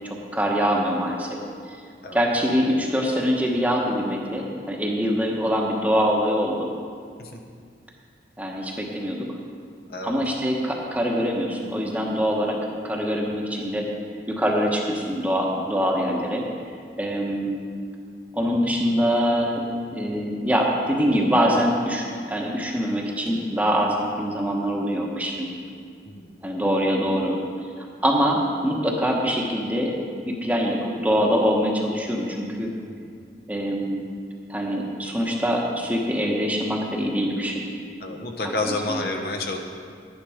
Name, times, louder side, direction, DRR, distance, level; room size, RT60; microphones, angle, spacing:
voice 1, 0.0-1.4 2.1-6.7 8.4-9.3 10.0-13.8 14.3-16.4 17.0-17.6 18.3-19.6 19.9-25.5 26.4-27.4 27.8-32.7 33.5-34.0 34.5-37.6 38.7-39.0, equal, 10° right, -1 dB, 1.1 m, -24 dB
voice 2, 38.0-39.6, left 2 dB, 60° left, 3 dB, 1.1 m, -29 dB
12.5 x 10.0 x 5.0 m, 2.2 s
head